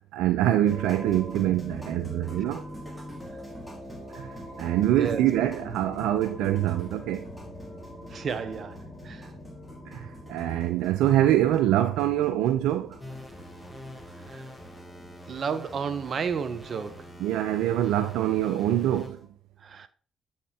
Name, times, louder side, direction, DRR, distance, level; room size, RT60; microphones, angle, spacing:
voice 1, 0.1-2.6 4.1-4.3 4.6-7.2 9.9-13.0 17.2-19.2, right 12 dB, 80° right, 0.3 m, -24 dB
sound 1, 0.7-19.3, equal, ahead, 2.4 m, -44 dB
sound 2, 2.3-14.8, left 2 dB, 70° left, 1.9 m, -48 dB
voice 2, 4.9-5.3 8.1-9.3 14.3-14.5 15.3-17.1 19.6-19.9, right 6 dB, 55° right, 0.8 m, -32 dB
sound 3, 13.0-19.1, left 1 dB, 20° left, 2.6 m, -45 dB
8.4 x 4.3 x 3.5 m
supercardioid pair, 50°, 0 cm